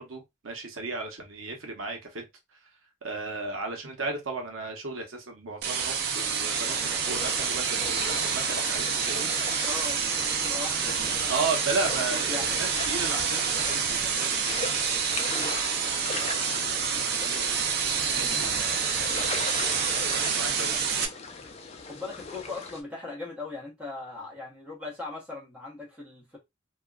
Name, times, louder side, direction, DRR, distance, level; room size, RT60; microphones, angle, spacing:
voice 1, 0.0-2.2 3.0-9.3 11.3-19.5 19.9-20.9, right 3 dB, 85° right, 0.8 m, -36 dB
sound 1, 5.6-21.1, right 6 dB, 50° right, 0.4 m, -28 dB
sound 2, 6.5-22.8, left 4 dB, 30° left, 0.4 m, -39 dB
voice 2, 9.5-12.5 21.8-26.4, left 3 dB, 5° right, 0.8 m, -39 dB
2.8 x 2.3 x 2.3 m
head